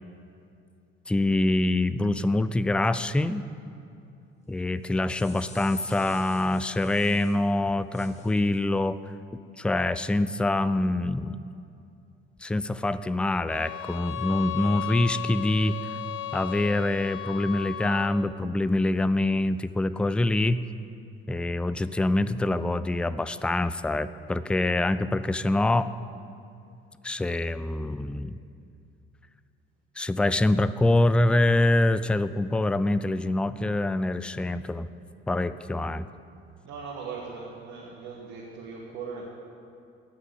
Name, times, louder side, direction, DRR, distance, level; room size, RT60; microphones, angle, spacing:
voice 1, 1.1-3.5 4.5-9.0 9.6-11.4 12.4-15.8 16.3-20.7 21.3-25.9 27.0-28.4 30.0-34.9 35.3-36.1, left 2 dB, 5° left, 14 dB, 0.3 m, -25 dB
sound 1, 4.8-7.4 7.9-8.6, left 2 dB, 20° left, 1.8 m, -50 dB
sound 2, 13.5-18.2, left 13 dB, 45° left, 0.9 m, -35 dB
voice 2, 36.6-39.3, right 5 dB, 65° right, -2 dB, 1.6 m, -39 dB
17.0 x 6.0 x 6.8 m, 2.5 s
figure-of-eight pair, 50°, 30 cm